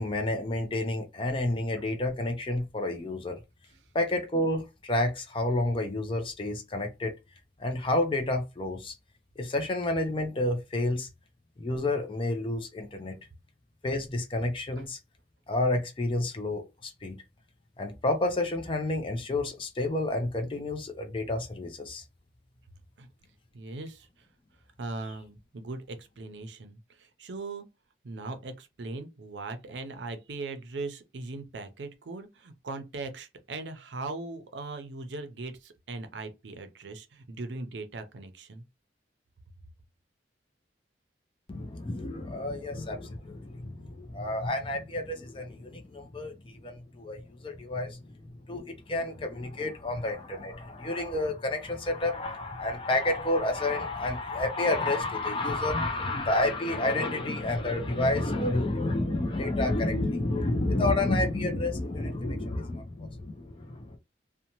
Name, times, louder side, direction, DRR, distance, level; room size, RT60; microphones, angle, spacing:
voice 1, 0.0-3.4 3.9-7.1 7.6-8.9 9.4-11.1 11.6-13.2 13.8-15.0 15.5-17.2 17.8-22.0 41.5-48.0 48.5-64.0, left 2 dB, 30° left, 0.4 m, -30 dB
voice 2, 23.5-24.3 24.8-27.7 28.0-38.6, right 3 dB, 85° right, 0.5 m, -39 dB
2.7 x 2.2 x 2.8 m
head